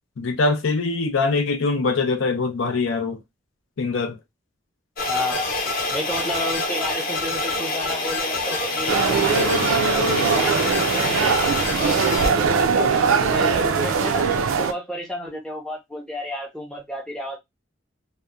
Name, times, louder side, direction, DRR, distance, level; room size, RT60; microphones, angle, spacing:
voice 1, 0.2-3.2 3.8-4.2, left 3 dB, 75° left, 0.5 m, -23 dB
sound 1, 5.0-12.3, left 2 dB, 45° left, 0.7 m, -26 dB
voice 2, 5.0-5.5 5.9-14.3 14.6-17.4, left 1 dB, 5° left, 0.5 m, -31 dB
sound 2, 8.9-14.7, right 5 dB, 85° right, 0.4 m, -21 dB
2.7 x 2.1 x 2.3 m
head